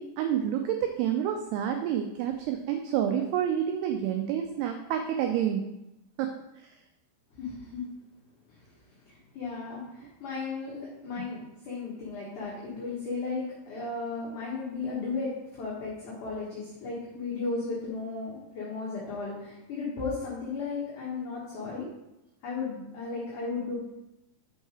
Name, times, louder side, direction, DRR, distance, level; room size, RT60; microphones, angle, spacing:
voice 1, 0.0-5.6 6.2-6.7 11.2-11.3, right 9 dB, 90° right, 5 dB, 2.3 m, -29 dB
voice 2, 7.4-7.8 9.1-21.9 22.4-23.8, left 4 dB, 60° left, -6 dB, 2.2 m, -35 dB
6.5 x 5.5 x 4.8 m, 0.91 s
omnidirectional pair, 5.3 m